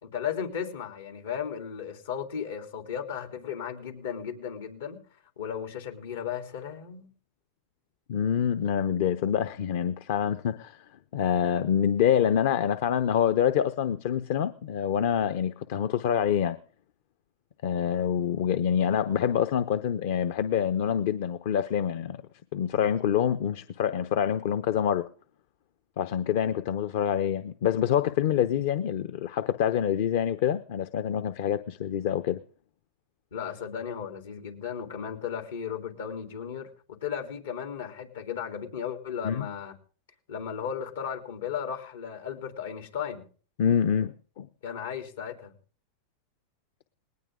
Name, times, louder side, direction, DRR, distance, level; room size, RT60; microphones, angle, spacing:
voice 1, 0.0-5.0 5.4-7.1 33.3-39.8 40.3-43.2 44.6-45.5, left 8 dB, 85° left, 5 dB, 3.7 m, -35 dB
voice 2, 8.1-10.8 11.1-16.6 17.6-22.2 22.5-25.1 26.0-32.4 39.2-39.4 43.6-44.5, left 9 dB, 65° left, 11 dB, 0.8 m, -26 dB
20.0 x 19.0 x 3.8 m, 0.41 s
supercardioid pair, 125°, 0 cm